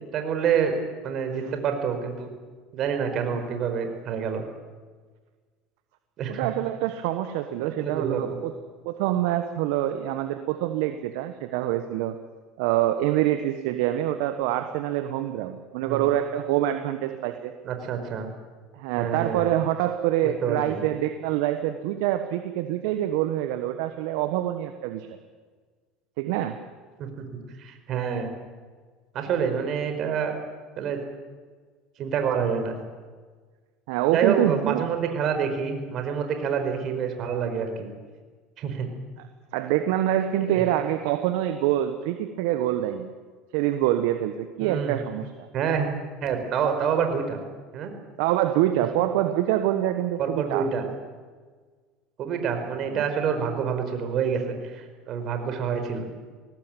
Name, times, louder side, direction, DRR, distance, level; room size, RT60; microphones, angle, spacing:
voice 1, 0.1-0.7 1.0-2.3 2.7-4.4 6.2-6.5 7.6-8.4 15.8-16.0 17.6-18.3 19.0-19.5 20.4-20.8 27.0-27.2 27.6-28.3 29.1-30.3 30.8-31.0 32.0-32.8 34.1-37.9 38.6-38.9 40.5-40.6 44.6-45.0 45.5-45.9 46.2-47.4 47.7-47.9 50.2-50.9 52.2-56.1, right 7 dB, 50° right, 6 dB, 4.8 m, -27 dB
voice 2, 6.3-8.5 8.8-12.1 12.6-17.5 18.8-25.1 26.2-26.6 33.9-34.9 39.5-43.1 43.5-45.5 48.2-50.6 52.9-53.0, right 12 dB, 70° right, 8 dB, 1.3 m, -25 dB
21.5 x 18.0 x 9.1 m, 1.5 s
hypercardioid pair, 75°, 0 cm